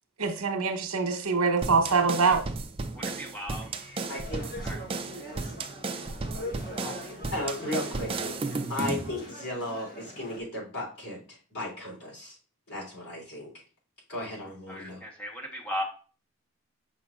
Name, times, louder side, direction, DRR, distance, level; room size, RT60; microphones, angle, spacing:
voice 1, 0.2-2.4, right 4 dB, 85° right, 1.0 m, -24 dB
sound 1, 1.6-9.1, right 3 dB, 25° right, 0.4 m, -34 dB
voice 2, 2.9-3.7 4.6-4.8 14.7-15.8, equal, 5° left, 1.1 m, -36 dB
voice 3, 3.8-4.5 6.8-12.4 12.7-13.6 14.1-15.0, left 1 dB, 85° left, 3.4 m, -36 dB
sound 2, 4.0-10.4, left 1 dB, 45° left, 1.4 m, -43 dB
6.8 x 5.9 x 2.5 m
head